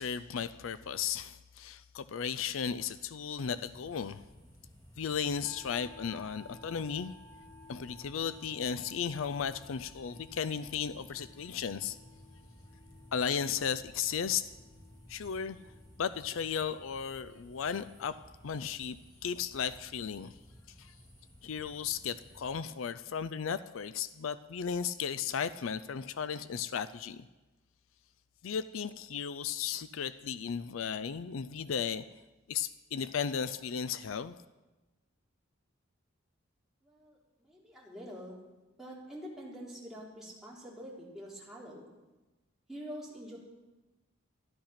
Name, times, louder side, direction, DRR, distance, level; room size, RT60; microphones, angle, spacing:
voice 1, 0.0-4.2 5.0-7.1 7.7-12.0 13.1-14.5 15.1-15.6 16.0-18.2 18.4-20.4 20.8-21.0 21.4-27.3 28.4-32.0 32.5-34.4, left 7 dB, 75° left, 13 dB, 0.5 m, -35 dB
sound 1, 3.4-22.5, equal, 20° left, 3.4 m, -57 dB
sound 2, 5.4-16.9, left 2 dB, 50° left, 2.1 m, -58 dB
voice 2, 36.8-38.4 38.8-41.9 42.7-43.4, equal, ahead, -6 dB, 3.4 m, -46 dB
13.0 x 12.0 x 5.8 m, 1.1 s
head